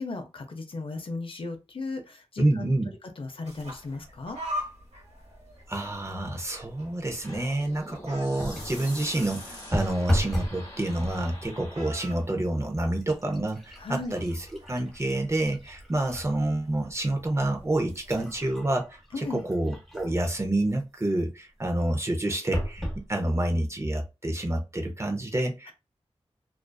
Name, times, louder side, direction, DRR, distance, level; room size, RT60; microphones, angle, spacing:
voice 1, 0.0-4.4 13.8-14.2 19.1-19.5 25.7-25.8, left 3 dB, 55° left, 0.5 m, -36 dB
voice 2, 2.4-2.9 5.7-25.7, right 1 dB, 25° right, 0.5 m, -28 dB
sound 1, 3.4-18.2, equal, 80° right, 1.0 m, -45 dB
sound 2, 7.2-12.3, left 1 dB, 35° left, 1.0 m, -44 dB
sound 3, 8.4-8.8 9.7-10.6 11.0-11.5 12.2-12.4 12.7-16.3 16.8-16.9 17.6-20.3 22.5-23.0 23.7-23.8 24.1-24.2, equal, ahead, 0.9 m, -33 dB
2.4 x 2.3 x 2.2 m
wide cardioid pair, 80°, 11 cm